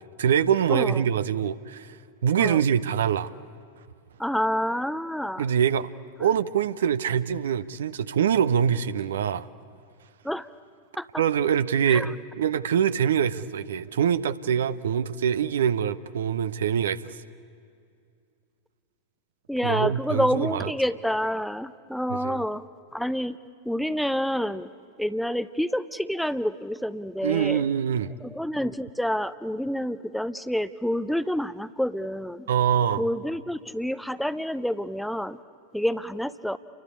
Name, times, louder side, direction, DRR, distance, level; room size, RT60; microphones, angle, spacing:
voice 1, 0.2-2.0 2.2-3.3 5.4-5.9 6.2-9.5 11.2-17.2 19.6-20.7 22.1-22.4 27.2-28.1 32.5-33.1, right 8 dB, 65° right, 14 dB, 0.8 m, -24 dB
voice 2, 0.7-1.0 2.4-2.6 4.2-5.4 10.2-10.5 11.0-11.2 11.9-12.1 19.5-22.6 22.9-23.4 23.6-24.7 25.0-27.7 28.2-32.5 33.0-35.4 35.7-36.6, equal, ahead, 14 dB, 0.7 m, -28 dB
29.5 x 23.5 x 8.5 m, 2.3 s
figure-of-eight pair, 90°, 0 cm